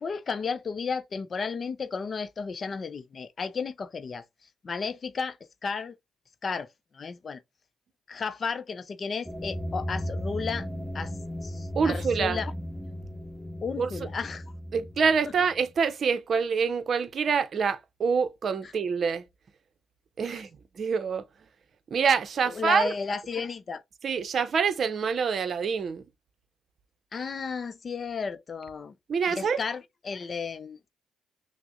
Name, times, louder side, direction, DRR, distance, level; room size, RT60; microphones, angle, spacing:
voice 1, 0.0-4.3 4.6-5.4 5.6-5.9 6.4-6.7 6.9-7.4 8.1-10.7 10.9-11.1 11.4-12.5 13.6-14.4 15.2-15.3 20.3-20.4 22.6-23.8 27.1-28.9 29.3-30.9, left 5 dB, 45° left, 0.5 m, -33 dB
sound 1, 9.2-15.7, equal, ahead, 1.6 m, -36 dB
voice 2, 11.7-12.4 13.8-13.9 14.7-19.3 20.2-21.3 21.9-22.9 24.0-26.1 29.1-29.6, right 6 dB, 55° right, 0.6 m, -26 dB
6.0 x 2.1 x 2.3 m
supercardioid pair, 60°, 0 cm